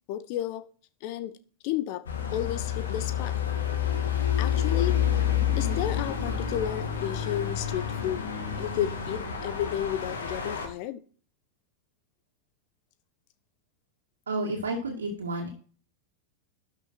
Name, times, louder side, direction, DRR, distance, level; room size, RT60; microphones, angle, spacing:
voice 1, 0.1-0.7 1.0-1.3 1.6-2.0 2.3-3.4 4.4-5.0 5.5-8.3 8.6-11.0, left 12 dB, 45° left, 15 dB, 1.0 m, -32 dB
sound 1, 2.1-10.7, left 9 dB, 65° left, 2.3 m, -29 dB
voice 2, 14.3-15.5, right 2 dB, 70° right, -1 dB, 2.2 m, -31 dB
12.0 x 6.1 x 4.5 m, 0.41 s
figure-of-eight pair, 90°, 0 cm